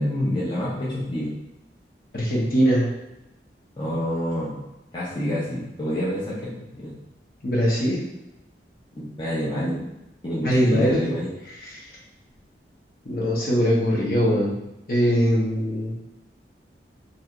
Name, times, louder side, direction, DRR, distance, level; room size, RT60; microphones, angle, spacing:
voice 1, 0.0-1.3 3.8-4.6 4.9-6.9 9.0-9.8 10.2-11.3, equal, 25° left, -9 dB, 0.6 m, -27 dB
voice 2, 2.1-2.9 7.4-8.0 10.4-11.2 11.5-11.8 13.0-14.5 14.9-15.9, equal, 55° left, -5 dB, 0.9 m, -21 dB
3.2 x 2.7 x 2.4 m, 0.93 s
head